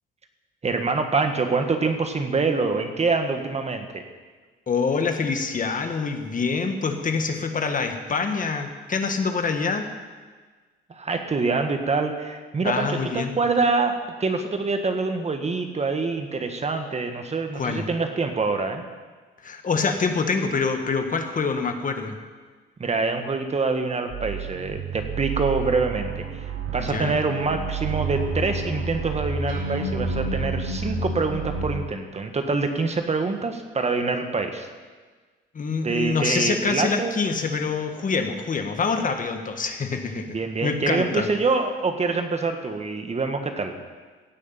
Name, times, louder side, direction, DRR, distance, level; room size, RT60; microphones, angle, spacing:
voice 1, 0.6-4.0 10.9-18.8 22.8-34.7 35.8-37.3 40.3-43.7, right 4 dB, 35° right, 6 dB, 1.5 m, -25 dB
voice 2, 4.7-9.9 12.6-13.4 17.5-17.8 19.4-22.2 26.8-27.2 35.5-40.4 40.6-41.3, left 4 dB, 40° left, 5 dB, 1.6 m, -25 dB
sound 1, 24.1-31.8, right 4 dB, 70° right, 2.9 m, -29 dB
16.0 x 6.5 x 9.0 m, 1.4 s
cardioid pair, 90°, 20 cm